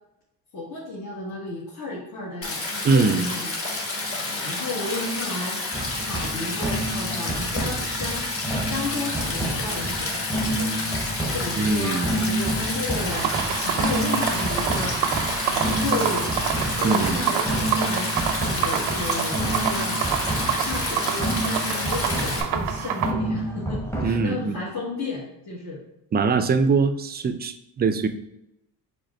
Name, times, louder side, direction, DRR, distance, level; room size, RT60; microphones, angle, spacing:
voice 1, 0.5-3.5 4.4-5.6 5.9-8.3 8.7-11.0 11.3-15.0 15.5-16.4 16.7-18.1 18.5-20.0 20.5-25.8, left 2 dB, 55° left, -6 dB, 1.5 m, -33 dB
Stream, 2.4-22.4, left 2 dB, 30° left, 1.3 m, -29 dB
voice 2, 2.8-3.2 11.6-12.2 15.5-15.7 16.8-17.3 24.0-24.6 26.1-28.1, right 4 dB, 25° right, 9 dB, 0.4 m, -22 dB
sound 1, 5.7-24.3, right 1 dB, 5° left, 0.8 m, -30 dB
sound 2, 13.1-23.1, right 9 dB, 80° right, 0.6 m, -28 dB
5.0 x 2.4 x 4.2 m, 0.86 s
supercardioid pair, 70°, 43 cm